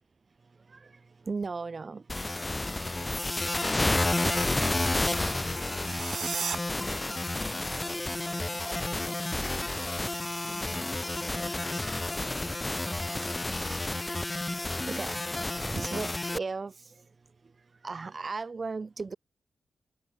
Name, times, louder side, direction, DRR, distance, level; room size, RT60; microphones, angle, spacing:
voice 1, 0.4-2.2 6.5-7.4 9.2-10.8 14.8-19.2, right 4 dB, 35° right, 1.4 m, -40 dB
sound 1, 2.1-16.4, left 2 dB, 15° left, 0.7 m, -30 dB
sound 2, 5.5-6.6, right 7 dB, 70° right, 0.5 m, -35 dB
voice 2, 6.8-8.7 10.4-13.9, equal, ahead, 2.9 m, -50 dB
wide cardioid pair, 140°, 0 cm